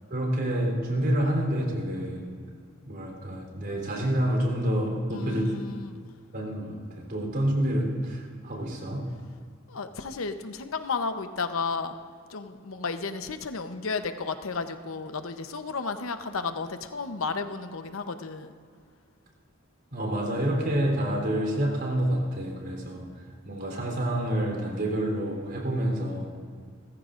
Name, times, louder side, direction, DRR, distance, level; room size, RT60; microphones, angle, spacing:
voice 1, 0.1-2.3 2.9-5.5 6.3-9.1 19.9-23.1 23.4-26.3, right 1 dB, 55° right, 0 dB, 3.5 m, -28 dB
voice 2, 5.1-6.0 9.7-11.9 12.3-18.5, left 4 dB, 90° left, 8 dB, 0.8 m, -33 dB
30.0 x 15.0 x 2.5 m, 2.2 s
head